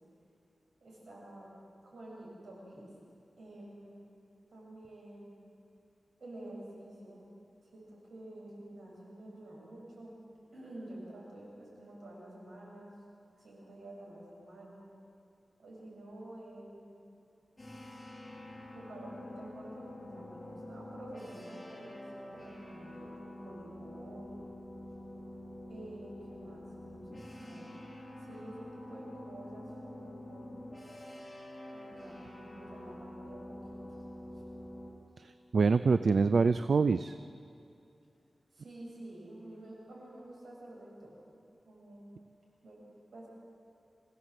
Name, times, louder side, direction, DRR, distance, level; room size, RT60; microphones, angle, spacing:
voice 1, 0.8-1.5 1.8-2.9 3.4-4.0 4.5-5.4 6.2-7.3 7.6-10.2 10.5-12.9 13.3-14.9 15.6-17.0 18.7-24.5 25.7-27.7 28.2-30.6 31.7-34.0 34.4-34.5 38.5-42.1 42.6-42.8 43.1-43.3, right 1 dB, 90° right, -4 dB, 7.4 m, -49 dB
sound 1, 17.6-34.9, left 1 dB, 15° left, 6.5 m, -47 dB
voice 2, 35.2-37.1, right 4 dB, 75° right, 12 dB, 0.5 m, -26 dB
26.0 x 16.0 x 7.9 m, 2.7 s
wide cardioid pair, 80°, 0 cm